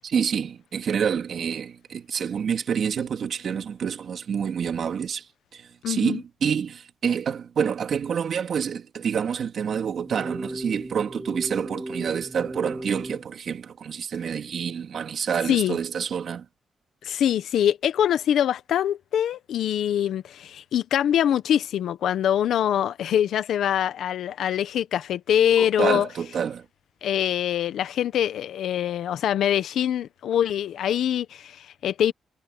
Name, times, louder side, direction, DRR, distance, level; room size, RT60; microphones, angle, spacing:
voice 1, 0.0-5.2 5.5-16.5 25.6-26.6, right 7 dB, 50° right, 2.9 m, -28 dB
voice 2, 5.8-6.2 15.5-15.8 17.0-26.1 27.0-32.1, left 10 dB, 80° left, 1.1 m, -24 dB
sound 1, 10.0-13.2, right 1 dB, 5° right, 2.1 m, -36 dB
wide cardioid pair, 160°, 0 cm